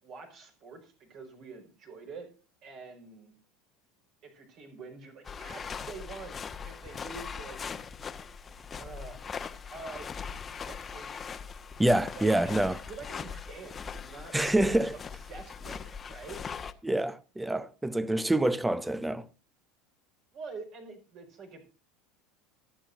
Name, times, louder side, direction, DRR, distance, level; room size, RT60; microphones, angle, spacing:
voice 1, 0.0-2.3 2.6-3.3 4.2-7.6 8.7-9.4 9.7-10.1 10.6-11.1 12.2-14.5 15.3-16.4 20.3-21.7, right 4 dB, 45° right, 5.1 m, -46 dB
sound 1, 5.2-16.7, left 6 dB, 25° left, 1.1 m, -40 dB
voice 2, 11.8-12.8 14.3-15.0 16.8-19.3, right 1 dB, 10° right, 0.8 m, -26 dB
25.5 x 8.7 x 2.6 m
figure-of-eight pair, 70°, 0 cm